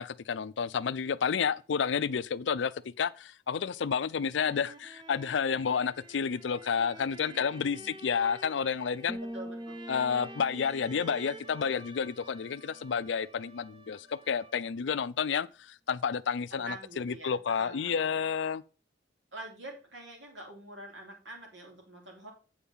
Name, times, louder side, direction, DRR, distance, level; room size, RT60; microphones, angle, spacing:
voice 1, 0.0-2.7 3.0-9.2 9.9-18.6, left 6 dB, 75° left, 0.4 m, -30 dB
sound 1, 4.1-14.8, right 2 dB, 25° right, 0.8 m, -51 dB
voice 2, 7.2-7.9 9.2-9.8 16.5-18.2 19.3-22.3, right 1 dB, 80° right, 3.3 m, -46 dB
sound 2, 9.1-12.8, equal, 5° right, 0.3 m, -44 dB
8.6 x 4.7 x 5.5 m
head